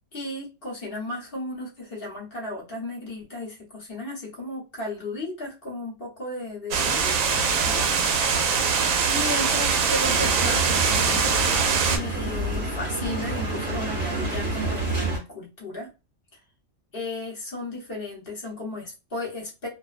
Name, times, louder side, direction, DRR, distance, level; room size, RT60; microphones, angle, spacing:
voice 1, 0.1-7.3 7.6-7.9 8.6-11.3 11.8-15.9 16.9-19.7, left 2 dB, 50° left, -2 dB, 1.1 m, -35 dB
sound 1, 6.7-12.0, right 5 dB, 85° right, 1.0 m, -22 dB
sound 2, 10.0-15.2, right 2 dB, 35° right, 0.9 m, -29 dB
2.5 x 2.1 x 2.4 m, 0.29 s
omnidirectional pair, 1.3 m